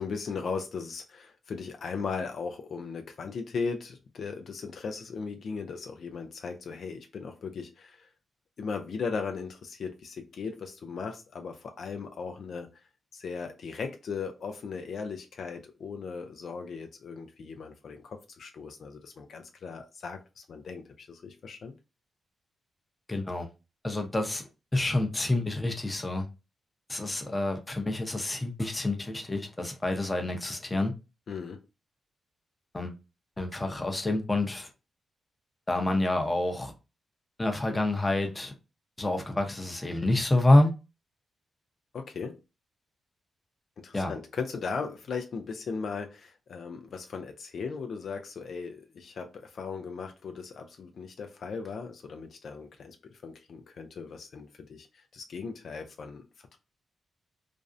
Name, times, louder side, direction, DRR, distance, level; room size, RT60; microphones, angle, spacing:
voice 1, 0.0-8.1 8.6-12.7 13.1-21.7 31.3-31.6 41.9-42.4 43.8-56.6, left 5 dB, 65° left, 0.3 m, -37 dB
voice 2, 23.1-23.5 23.8-26.3 26.9-30.9 32.7-32.9 33.4-34.7 35.7-36.7 37.4-38.5 39.0-40.7 43.9-44.1, left 2 dB, 20° left, 0.6 m, -27 dB
2.4 x 2.0 x 2.5 m
cardioid pair, 80°, 0 cm